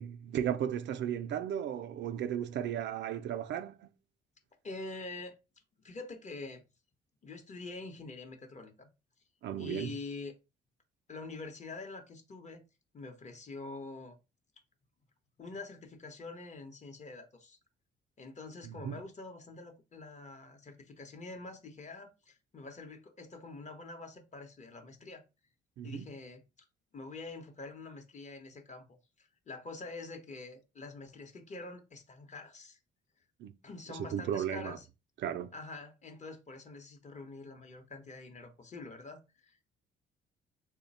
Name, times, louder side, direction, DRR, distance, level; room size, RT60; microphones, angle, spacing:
voice 1, 0.0-3.9 9.4-9.9 18.6-19.0 25.8-26.1 33.4-33.5 34.0-34.8 35.2-35.5, right 9 dB, 65° right, 0.4 m, -35 dB
voice 2, 4.6-5.3 5.8-6.6 7.2-8.9 9.6-10.3 11.1-12.6 12.9-14.2 15.4-17.6 18.2-25.2 25.8-26.7 26.9-28.9 29.2-32.8 33.6-34.9 35.5-39.7, left 3 dB, 35° left, 0.8 m, -46 dB
3.2 x 2.1 x 4.0 m
cardioid pair, 90°, 20 cm